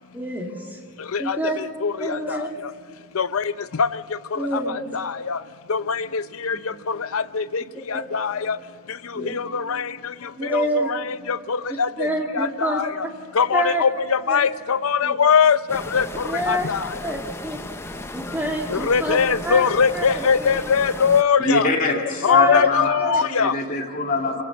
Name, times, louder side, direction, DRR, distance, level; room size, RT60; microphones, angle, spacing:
voice 1, 0.1-0.8 1.2-1.6 2.0-2.5 4.4-4.9 7.9-8.0 9.1-9.3 10.4-10.9 12.0-12.8 13.5-13.8 14.3-14.5 15.0-15.1 16.2-16.7 17.0-17.6 18.1-19.2 19.4-19.6 19.9-20.5 22.3-22.7 23.0-23.2, right 1 dB, 10° right, 0 dB, 2.6 m, -27 dB
voice 2, 1.1-2.5 3.1-4.0 4.3-5.4 5.7-6.6 6.9-7.6 7.9-8.6 9.1-10.1 10.4-12.1 12.3-13.1 13.3-16.9 18.7-21.7 22.2-23.5, left 6 dB, 80° left, 14 dB, 0.6 m, -22 dB
sound 1, 15.7-21.2, left 1 dB, 10° left, 0.7 m, -35 dB
voice 3, 21.4-24.4, left 3 dB, 35° left, 0 dB, 2.7 m, -24 dB
26.0 x 17.5 x 7.4 m, 2.3 s
head